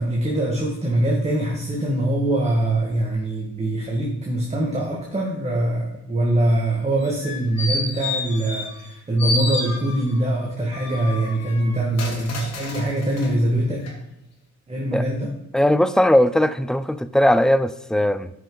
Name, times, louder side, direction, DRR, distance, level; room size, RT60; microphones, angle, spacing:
voice 1, 0.0-13.9 14.7-15.3, right 1 dB, 20° right, -2 dB, 1.8 m, -23 dB
sound 1, 7.0-8.9 9.2-10.2 10.7-13.3 13.8-13.9, left 3 dB, 60° left, 2.6 m, -30 dB
voice 2, 15.5-18.3, left 1 dB, ahead, 14 dB, 0.4 m, -18 dB
9.2 x 6.6 x 4.0 m, 0.84 s
cardioid pair, 90°, 29 cm